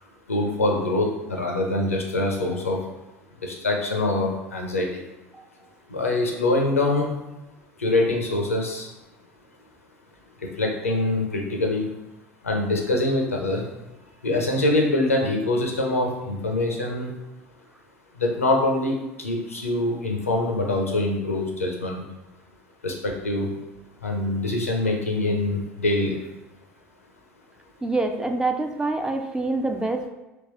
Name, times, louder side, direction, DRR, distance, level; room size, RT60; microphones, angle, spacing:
voice 1, 0.3-2.8 3.4-5.0 5.9-7.1 7.8-8.9 10.6-11.9 12.4-13.6 14.2-17.1 18.2-22.0 22.8-23.5 24.0-26.2, left 2 dB, 85° left, 1 dB, 0.6 m, -24 dB
voice 2, 27.8-30.1, right 2 dB, 10° right, 5 dB, 0.3 m, -26 dB
3.5 x 2.9 x 3.0 m, 1.0 s
figure-of-eight pair, 65°, 7 cm